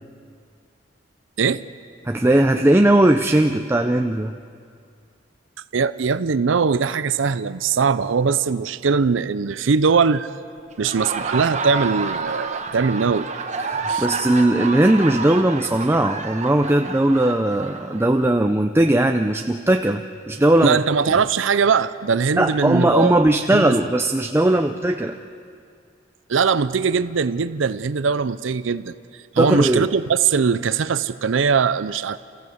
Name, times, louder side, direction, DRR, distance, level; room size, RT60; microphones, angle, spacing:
voice 1, 2.1-4.3 13.6-20.8 22.4-25.2 29.4-29.8, right 1 dB, 15° right, 5 dB, 0.5 m, -18 dB
voice 2, 5.7-10.3 10.8-13.3 13.9-14.1 20.6-23.1 23.5-23.8 26.3-28.9 29.3-32.2, right 5 dB, 80° right, 14 dB, 0.5 m, -21 dB
Laughter, 10.7-18.3, right 4 dB, 40° right, 1.3 m, -29 dB
28.0 x 15.5 x 7.9 m, 2.3 s
head